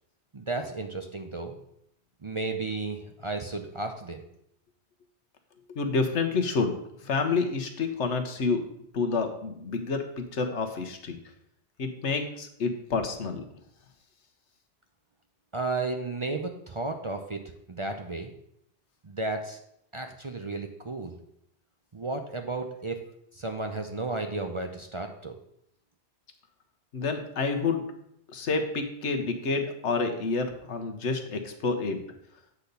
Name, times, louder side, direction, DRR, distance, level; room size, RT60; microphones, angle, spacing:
voice 1, 0.3-1.6 2.2-4.2 15.5-17.4 17.7-18.3 19.0-19.6 19.9-21.2 21.9-23.0 23.3-25.3, right 3 dB, 35° right, 4 dB, 0.6 m, -33 dB
voice 2, 5.7-6.7 7.0-8.6 8.9-11.2 11.8-13.4 26.9-27.8 28.3-32.0, left 4 dB, 85° left, 5 dB, 1.3 m, -28 dB
8.3 x 4.0 x 6.8 m, 0.74 s
omnidirectional pair, 1.2 m